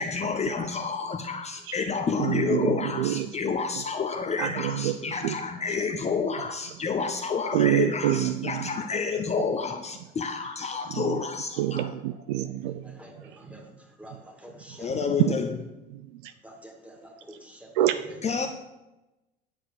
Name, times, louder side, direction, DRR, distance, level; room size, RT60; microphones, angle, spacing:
voice 1, 0.0-11.9 14.8-15.5 18.2-18.5, left 5 dB, 20° left, 6 dB, 0.8 m, -29 dB
voice 2, 2.2-3.3 4.4-5.4 7.5-9.0 10.9-11.2 11.6-12.8 13.2-13.3 15.2-15.4 15.9-16.3 17.7-18.0, right 12 dB, 60° right, 10 dB, 0.6 m, -27 dB
voice 3, 12.8-13.7 14.0-14.9 16.4-17.7 18.1-18.2, right 1 dB, 5° right, 2 dB, 2.3 m, -47 dB
10.0 x 7.0 x 5.0 m, 0.97 s
figure-of-eight pair, 60°, 29 cm